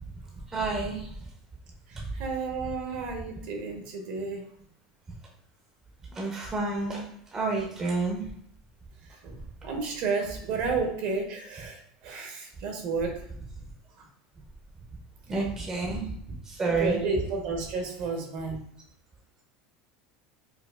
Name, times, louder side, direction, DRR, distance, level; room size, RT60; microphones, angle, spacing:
voice 1, 0.5-1.1 6.2-7.1 7.3-8.2 15.3-16.1 16.5-17.0, right 3 dB, 20° right, -1 dB, 0.6 m, -29 dB
voice 2, 2.1-4.4 9.2-9.3 9.6-13.1 16.6-18.6, right 4 dB, 60° right, 2 dB, 0.9 m, -31 dB
4.5 x 2.4 x 2.3 m, 0.70 s
supercardioid pair, 135°, 3 cm